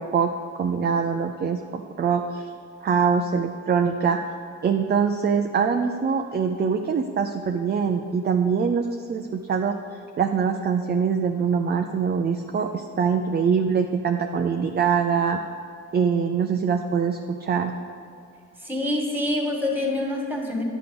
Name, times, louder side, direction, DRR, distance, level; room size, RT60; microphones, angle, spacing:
voice 1, 0.0-2.5 2.8-4.2 4.6-9.8 10.2-15.4 15.9-17.7, right 6 dB, 35° right, 5 dB, 0.5 m, -23 dB
voice 2, 18.6-20.6, left 1 dB, 5° right, 0 dB, 1.8 m, -26 dB
10.0 x 6.0 x 5.2 m, 2.4 s
cardioid pair, 90°, 30 cm